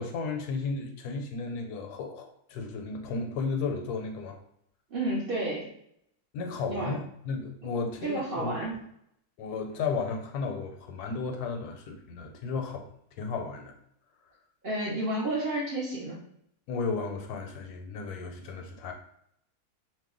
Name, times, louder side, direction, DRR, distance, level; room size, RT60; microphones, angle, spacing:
voice 1, 0.0-4.4 6.3-8.6 9.4-12.9 13.2-13.7 16.7-18.9, left 4 dB, 80° left, 4 dB, 1.1 m, -34 dB
voice 2, 4.9-5.7 6.7-6.9 8.0-8.7 14.6-16.2, right 1 dB, 65° right, -5 dB, 0.5 m, -31 dB
2.7 x 2.1 x 3.6 m, 0.72 s
omnidirectional pair, 1.7 m